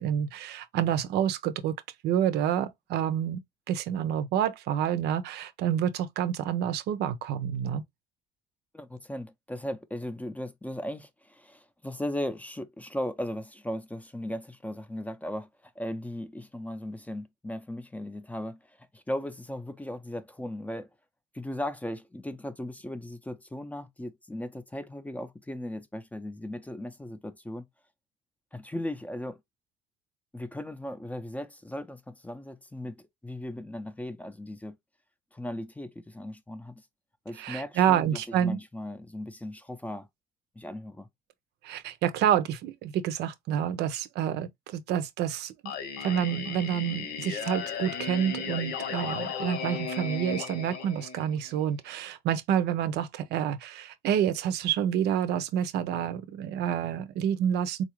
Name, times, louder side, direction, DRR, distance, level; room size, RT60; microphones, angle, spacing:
voice 1, 0.0-1.7 2.0-3.4 3.7-7.8 37.4-38.6 41.6-57.8, right 9 dB, 80° right, 0.6 m, -28 dB
voice 2, 8.7-20.9 21.3-27.7 28.5-29.4 30.3-34.8 35.3-36.8 37.3-40.1 40.6-41.1, left 1 dB, 10° left, 0.5 m, -37 dB
Singing, 45.6-51.6, left 5 dB, 85° left, 1.1 m, -35 dB
3.9 x 2.4 x 3.0 m
cardioid pair, 110°, 17 cm